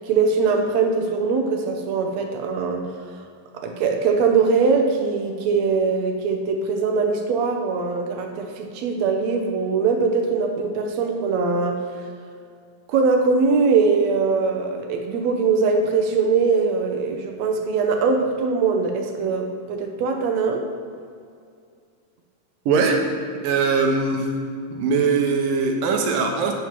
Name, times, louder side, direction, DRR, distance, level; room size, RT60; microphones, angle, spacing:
voice 1, 0.0-3.2 3.5-11.8 12.9-20.7, right 4 dB, 70° right, 4 dB, 1.8 m, -22 dB
voice 2, 22.7-23.0 23.4-24.3 24.7-26.5, right 4 dB, 90° right, 3 dB, 2.7 m, -21 dB
9.2 x 6.2 x 5.9 m, 2.3 s
omnidirectional pair, 3.8 m